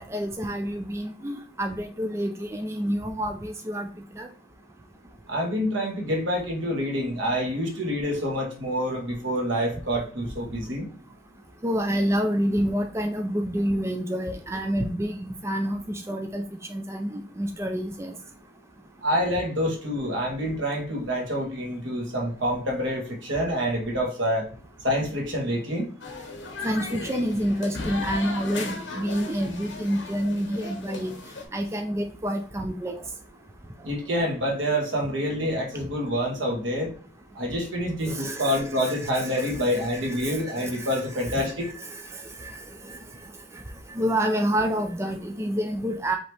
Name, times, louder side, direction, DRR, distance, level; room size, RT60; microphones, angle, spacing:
voice 1, 0.0-3.9 4.2-4.3 11.6-16.4 16.7-18.1 26.6-31.1 31.5-32.9 38.0-42.6 42.8-43.0 43.5-43.6 43.9-46.2, equal, 15° right, 4 dB, 0.4 m, -28 dB
voice 2, 5.3-10.9 19.0-24.5 24.8-25.9 33.8-36.9 37.3-41.6, equal, 80° right, 0 dB, 1.6 m, -27 dB
sound 1, 26.0-31.4, left 3 dB, 75° left, 1.3 m, -36 dB
5.2 x 2.9 x 3.3 m, 0.42 s
head